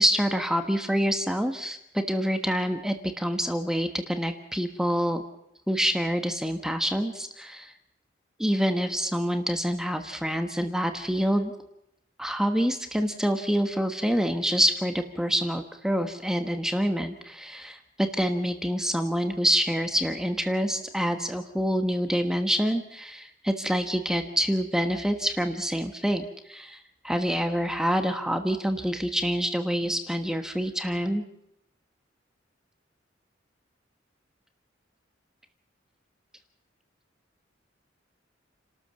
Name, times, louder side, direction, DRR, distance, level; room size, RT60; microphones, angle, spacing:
voice 1, 0.0-5.2 5.7-7.7 8.4-11.5 12.2-26.8 27.0-31.2, equal, 5° right, 6 dB, 1.2 m, -26 dB
30.0 x 13.0 x 6.9 m, 0.79 s
head